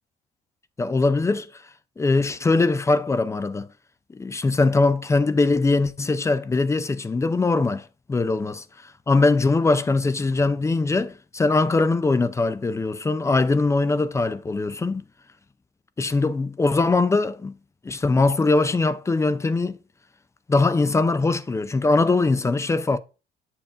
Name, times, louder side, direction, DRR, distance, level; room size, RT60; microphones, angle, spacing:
voice 1, 0.8-1.5 2.0-3.7 4.1-8.6 9.1-15.0 16.0-17.5 17.8-19.8 20.5-23.0, left 3 dB, 15° left, 0.4 m, -21 dB
7.1 x 7.0 x 2.5 m
cardioid pair, 110°, 17 cm